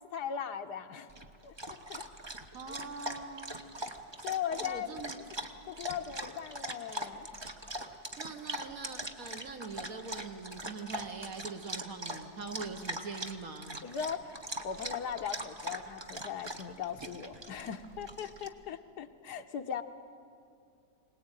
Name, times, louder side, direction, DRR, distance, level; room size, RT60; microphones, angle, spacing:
voice 1, 0.1-1.1 1.4-1.5 1.9-2.0 3.8-4.0 4.2-5.0 5.7-7.3 13.8-14.3 14.6-19.8, left 8 dB, 75° left, 7 dB, 1.5 m, -38 dB
Dog, 1.1-18.5, right 1 dB, 20° right, 0.8 m, -42 dB
voice 2, 2.5-3.6 4.5-5.2 8.2-13.9, right 4 dB, 60° right, 6 dB, 1.6 m, -43 dB
22.5 x 19.5 x 9.0 m, 2.4 s
omnidirectional pair, 1.8 m